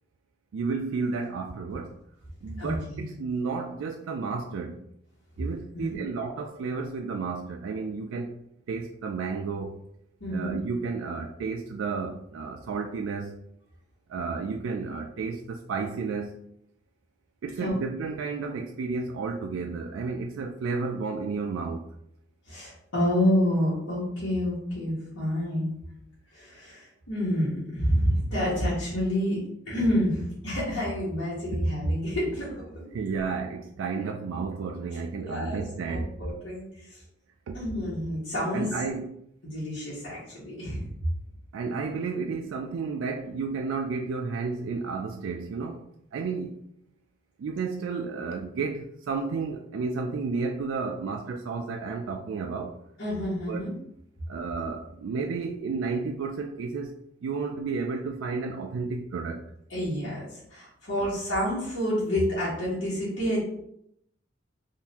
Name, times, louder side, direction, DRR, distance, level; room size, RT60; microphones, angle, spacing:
voice 1, 0.5-2.0 2.4-4.8 5.4-8.3 8.7-9.8 10.3-13.4 14.1-16.4 17.4-21.9 32.9-36.1 37.5-37.6 38.5-39.2 41.5-45.9 46.1-46.6 47.4-52.7 53.5-53.7 54.3-59.4 61.0-61.1, right 4 dB, 85° right, 3 dB, 0.3 m, -32 dB
voice 2, 2.6-3.0 5.7-6.0 10.2-10.5 17.6-17.7 22.5-25.8 26.3-29.4 29.6-32.8 35.2-35.6 35.9-37.0 37.5-38.7 39.4-40.9 53.0-53.7 59.7-63.4, equal, 80° left, -10 dB, 1.3 m, -28 dB
3.7 x 2.6 x 2.8 m, 0.73 s
head